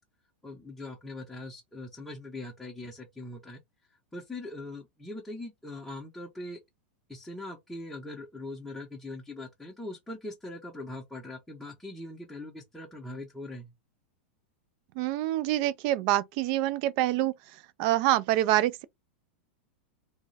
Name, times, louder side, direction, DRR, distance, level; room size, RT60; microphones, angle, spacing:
voice 1, 0.4-3.6 4.1-6.6 7.1-13.7, left 2 dB, 5° left, 0.7 m, -41 dB
voice 2, 15.0-17.3 17.8-18.8, right 15 dB, 50° right, 0.4 m, -26 dB
2.3 x 2.0 x 3.8 m
hypercardioid pair, 110°, 6 cm